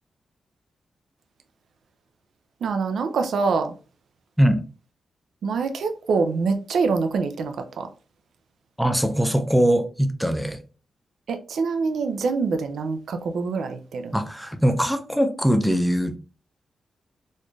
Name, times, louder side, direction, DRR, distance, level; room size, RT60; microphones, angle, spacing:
voice 1, 2.6-3.7 5.4-7.9 11.3-14.2, right 4 dB, 70° right, 0.4 m, -25 dB
voice 2, 8.8-10.6 14.1-16.2, equal, ahead, 0.4 m, -21 dB
4.2 x 3.1 x 2.3 m
wide cardioid pair, 165°, 0 cm